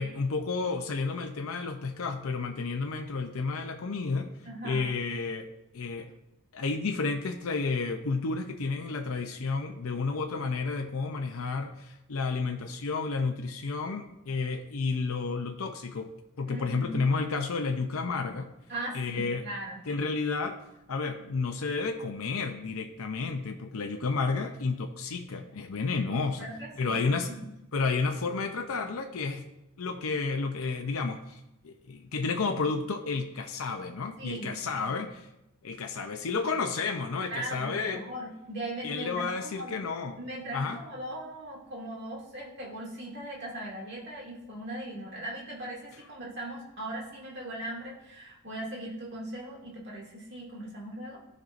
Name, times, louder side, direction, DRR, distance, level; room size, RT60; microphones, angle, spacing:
voice 1, 0.0-4.3 4.6-6.1 6.5-16.1 16.4-18.5 18.9-19.5 19.9-20.6 20.9-26.5 26.8-27.3 27.7-29.5 29.8-35.3 35.6-38.0 38.8-40.2 40.5-40.8, left 4 dB, 80° left, 5 dB, 0.6 m, -31 dB
voice 2, 4.5-4.9 16.5-17.0 18.7-19.8 26.4-27.5 34.2-35.1 37.3-39.7 40.2-51.2, right 1 dB, 50° right, -4 dB, 2.3 m, -39 dB
14.5 x 5.4 x 2.6 m, 0.88 s
head